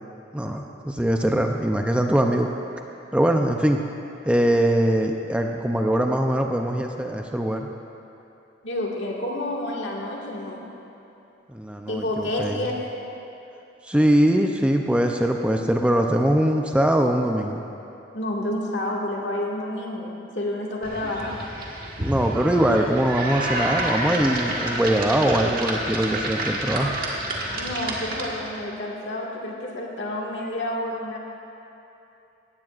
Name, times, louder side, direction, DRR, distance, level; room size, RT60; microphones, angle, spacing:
voice 1, 0.3-2.5 3.1-3.8 4.3-7.7 11.5-12.6 13.8-17.6 22.0-27.0, right 1 dB, 5° right, 3 dB, 0.5 m, -22 dB
voice 2, 8.6-10.7 11.9-13.0 18.1-21.4 27.5-31.2, left 1 dB, 70° left, -2 dB, 2.0 m, -29 dB
sound 1, 20.8-28.6, right 1 dB, 50° right, 1.7 m, -29 dB
18.0 x 15.5 x 2.5 m, 2.8 s
head